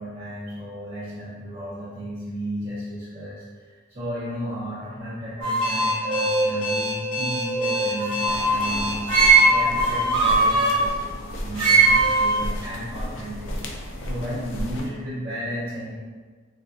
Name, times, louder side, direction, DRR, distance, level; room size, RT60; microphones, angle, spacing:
voice 1, 0.0-15.9, equal, 35° right, -14 dB, 0.8 m, -34 dB
sound 1, 5.4-8.7 9.1-10.8 11.6-12.4, right 3 dB, 75° right, 1.0 m, -20 dB
Alarm, 5.6-9.4, left 1 dB, 80° left, 1.2 m, -29 dB
sound 2, 8.3-14.9, equal, 65° left, 0.4 m, -34 dB
3.4 x 2.3 x 2.5 m, 1.5 s
head